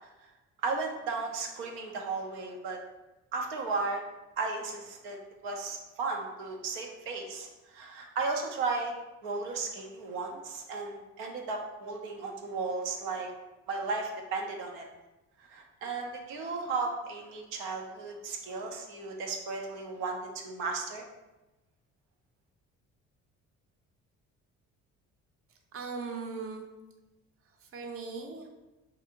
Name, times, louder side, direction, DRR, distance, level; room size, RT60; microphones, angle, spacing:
voice 1, 0.6-2.8 3.3-4.0 4.4-8.9 9.2-13.3 13.7-14.8 15.4-20.2 20.4-21.0, right 4 dB, 85° right, 1 dB, 0.5 m, -35 dB
voice 2, 25.5-26.6 27.4-28.5, right 4 dB, 40° right, 3 dB, 0.5 m, -39 dB
2.6 x 2.4 x 2.7 m, 1.0 s
hypercardioid pair, 60°, 35 cm